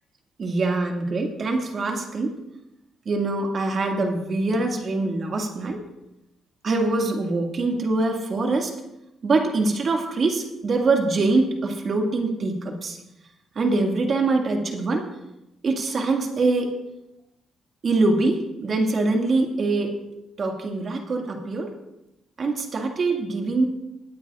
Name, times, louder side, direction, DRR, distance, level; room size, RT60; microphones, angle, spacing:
voice 1, 0.4-2.3 3.1-5.8 6.6-8.7 9.2-13.0 13.6-15.0 15.6-16.7 17.8-19.9 20.4-21.7 22.4-23.6, right 3 dB, 45° right, 2 dB, 2.1 m, -23 dB
20.0 x 9.0 x 2.5 m, 0.90 s
cardioid pair, 90°, 0 cm